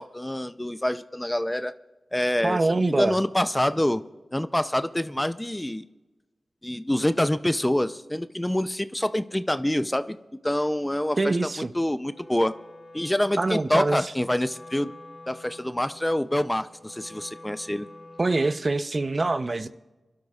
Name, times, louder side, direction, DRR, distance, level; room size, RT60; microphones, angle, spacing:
voice 1, 0.0-1.7 2.1-4.0 4.3-5.9 6.6-10.2 10.4-12.5 12.9-14.9 15.3-17.9, left 1 dB, 15° left, 12 dB, 0.5 m, -26 dB
voice 2, 2.4-3.2 11.2-11.7 13.4-14.1 18.2-19.7, right 2 dB, 45° right, 12 dB, 0.6 m, -24 dB
Wind instrument woodwind instrument, 12.0-18.7, left 2 dB, 50° left, 2.6 m, -48 dB
28.5 x 12.0 x 2.4 m, 1.1 s
cardioid pair, 45°, 0 cm